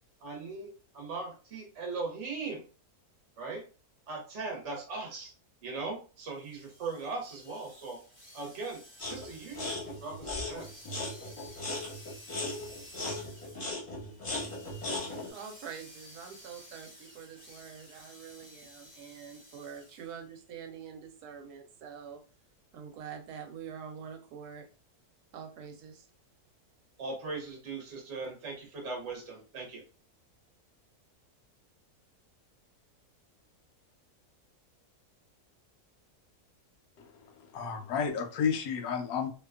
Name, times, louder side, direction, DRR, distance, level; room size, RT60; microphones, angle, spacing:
voice 1, 0.2-2.7 3.4-3.6 4.1-5.3 5.6-8.0 8.3-10.8 27.0-29.8, right 3 dB, 55° right, -1 dB, 0.9 m, -39 dB
sound 1, 6.3-20.2, left 1 dB, 20° right, 0.8 m, -54 dB
sound 2, 9.0-9.3 9.5-15.3, left 2 dB, 25° left, 0.7 m, -37 dB
voice 2, 15.3-22.2 22.7-24.6 25.3-26.1, right 7 dB, 80° right, 4 dB, 1.1 m, -45 dB
voice 3, 37.0-39.3, left 6 dB, 75° left, 4 dB, 1.0 m, -32 dB
2.7 x 2.2 x 2.3 m, 0.37 s
omnidirectional pair, 1.6 m